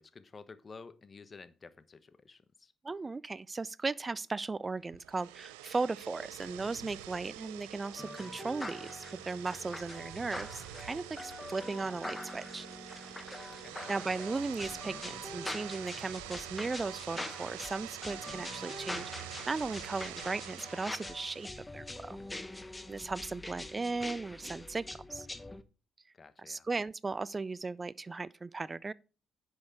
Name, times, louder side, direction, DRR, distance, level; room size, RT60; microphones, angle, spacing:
voice 1, 0.0-2.7 13.5-13.8 26.1-26.7, left 4 dB, 40° left, 1.1 m, -52 dB
voice 2, 2.8-12.7 13.3-13.5 13.9-22.2 22.9-25.3 26.4-28.9, right 3 dB, 30° right, 0.4 m, -37 dB
sound 1, 4.9-21.5, right 15 dB, 90° right, 0.6 m, -46 dB
sound 2, 8.0-25.6, left 1 dB, 15° left, 1.0 m, -44 dB
10.5 x 6.4 x 4.8 m
hypercardioid pair, 55°, 0 cm